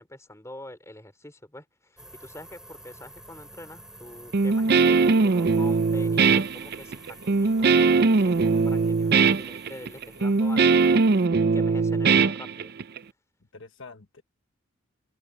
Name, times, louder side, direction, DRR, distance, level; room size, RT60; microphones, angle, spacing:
voice 1, 0.0-7.0 7.3-10.8 11.4-12.7, left 1 dB, 15° left, 4.0 m, -45 dB
sound 1, 2.0-11.3, right 1 dB, 5° right, 4.3 m, -49 dB
Guitar, 4.3-13.0, right 4 dB, 50° right, 0.5 m, -21 dB
voice 2, 8.5-8.9 11.8-12.0 13.5-14.2, left 3 dB, 65° left, 1.4 m, -46 dB
open air
head